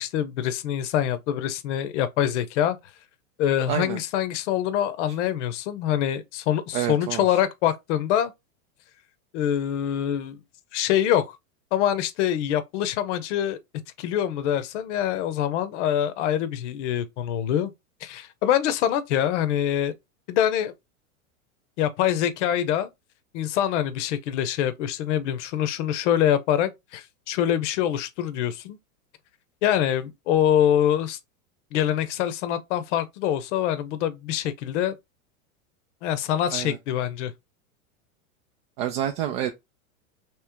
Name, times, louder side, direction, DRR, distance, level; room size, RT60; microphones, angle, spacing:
voice 1, 0.0-2.8 3.4-8.3 9.3-10.4 10.7-11.2 11.7-13.6 14.0-17.7 18.0-19.9 20.3-20.7 21.8-22.9 23.3-28.8 29.6-31.2 31.7-35.0 36.0-37.3, left 10 dB, 55° left, 0.7 m, -25 dB
voice 2, 3.7-4.0 5.1-5.2 6.7-7.4 36.5-36.8 38.8-39.5, right 11 dB, 45° right, 0.5 m, -28 dB
3.1 x 3.1 x 3.4 m
supercardioid pair, 140°, 42 cm